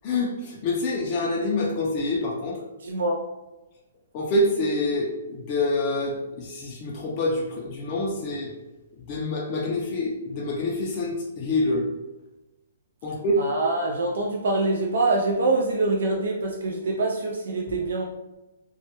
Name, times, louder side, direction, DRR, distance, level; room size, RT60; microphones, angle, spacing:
voice 1, 0.0-2.6 4.1-8.5 9.0-11.9 13.0-13.5, left 2 dB, 30° left, -3 dB, 0.3 m, -26 dB
voice 2, 2.8-3.2 13.4-18.1, right 2 dB, 70° right, -1 dB, 0.3 m, -25 dB
2.1 x 2.1 x 2.8 m, 1.0 s
hypercardioid pair, 160°, 0 cm